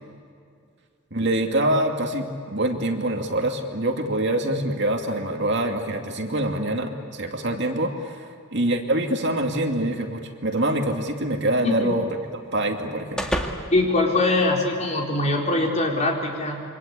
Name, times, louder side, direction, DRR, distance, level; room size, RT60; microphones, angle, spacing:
voice 1, 1.1-12.1 12.5-13.4, right 1 dB, 55° right, 3 dB, 2.5 m, -25 dB
sound 1, 10.6-15.0, equal, 5° left, 2.0 m, -35 dB
voice 2, 13.7-16.6, left 2 dB, 35° left, -1 dB, 4.4 m, -22 dB
27.5 x 25.0 x 8.5 m, 2.4 s
head